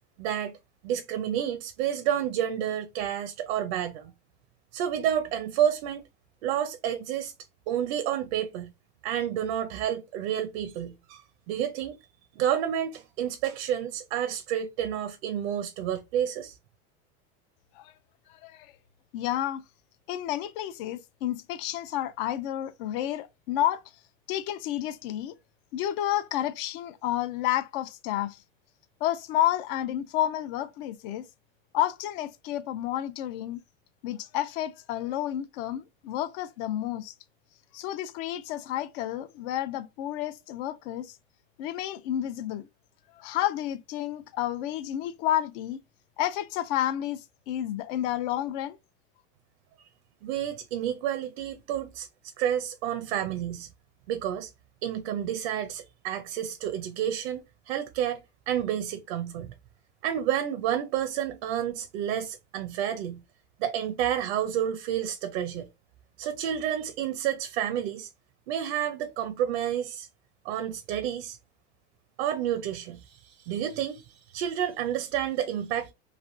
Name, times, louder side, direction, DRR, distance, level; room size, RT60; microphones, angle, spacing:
voice 1, 0.2-0.5 0.8-4.1 4.7-6.0 6.4-7.3 7.7-8.7 9.0-11.2 11.5-12.0 12.4-16.6 50.2-52.1 52.4-53.7 54.1-54.5 54.8-59.5 60.0-63.2 63.6-65.7 66.2-68.1 68.5-70.1 70.4-71.4 72.2-75.9, right 10 dB, 70° right, 0.6 m, -30 dB
voice 2, 18.3-18.7 19.1-19.6 20.1-23.8 24.3-25.4 25.7-28.4 29.0-31.2 31.7-33.6 34.0-37.1 37.7-41.2 41.6-42.7 43.2-45.8 46.2-48.8, left 12 dB, 55° left, 0.4 m, -30 dB
3.3 x 2.5 x 2.5 m
supercardioid pair, 140°, 34 cm